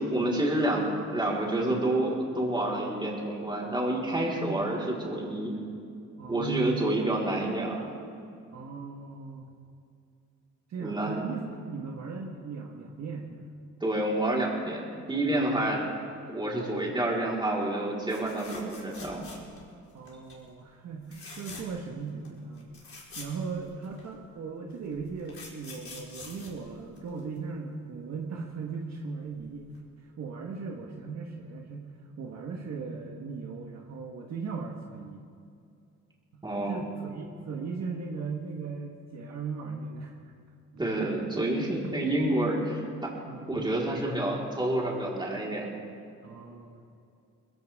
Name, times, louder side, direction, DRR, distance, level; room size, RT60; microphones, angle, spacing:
voice 1, 0.1-5.6 6.3-7.9 10.8-11.2 13.8-15.8 16.3-19.2 36.4-36.8 40.8-43.1 43.5-45.7, right 1 dB, 15° right, -4 dB, 4.4 m, -28 dB
voice 2, 6.2-7.0 8.5-9.4 10.7-13.5 15.3-15.8 19.9-22.7 23.1-29.7 30.2-35.2 36.3-40.3 43.3-43.7 46.2-46.8, right 5 dB, 60° right, 0 dB, 1.6 m, -38 dB
sound 1, 18.1-19.7 20.0-20.4 21.0-21.9 22.2-22.3 22.6-24.1 24.8-27.4 29.3-29.4 29.7-29.8, left 3 dB, 45° left, 4.7 m, -46 dB
21.0 x 16.0 x 3.7 m, 2.4 s
cardioid pair, 90°, 30 cm